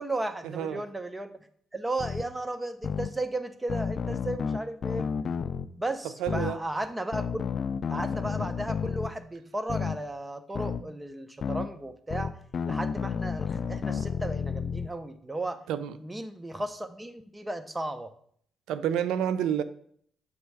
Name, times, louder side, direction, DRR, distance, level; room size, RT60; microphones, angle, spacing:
voice 1, 0.0-1.4 1.7-5.1 5.8-7.4 7.9-12.4 12.7-15.6 16.0-18.1, right 1 dB, 15° right, 0.6 m, -35 dB
sound 1, 2.0-2.2 2.8-3.1 3.7-5.7 6.3-6.5 7.1-9.1 9.7-10.0 10.6-10.8 11.4-11.7 12.1-14.9, left 6 dB, 55° left, 0.3 m, -31 dB
voice 2, 6.2-6.6 15.7-15.9 18.7-19.6, right 9 dB, 90° right, 0.4 m, -28 dB
7.2 x 3.1 x 4.7 m
cardioid pair, 90°, 0 cm